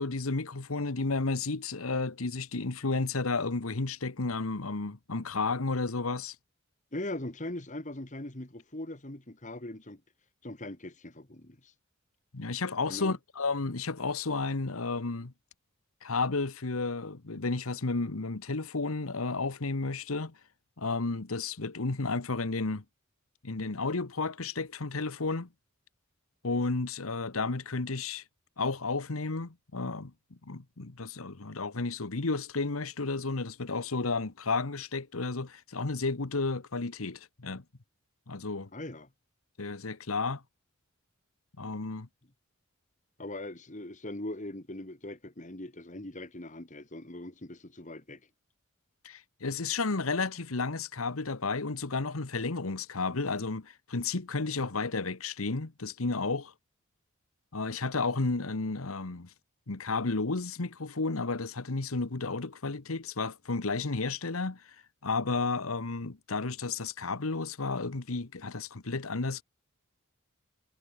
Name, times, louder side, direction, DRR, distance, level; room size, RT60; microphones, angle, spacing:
voice 1, 0.0-6.3 12.3-15.3 16.0-20.3 20.8-22.8 23.4-25.5 26.4-28.2 28.6-30.1 30.5-37.6 38.3-38.7 39.6-40.4 41.6-42.1 49.0-56.5 57.5-59.3 59.7-69.4, left 3 dB, 85° left, 1.3 m, -32 dB
voice 2, 6.9-10.0 10.4-11.7 12.9-13.1 38.7-39.1 43.2-48.2, left 1 dB, 35° left, 2.2 m, -40 dB
head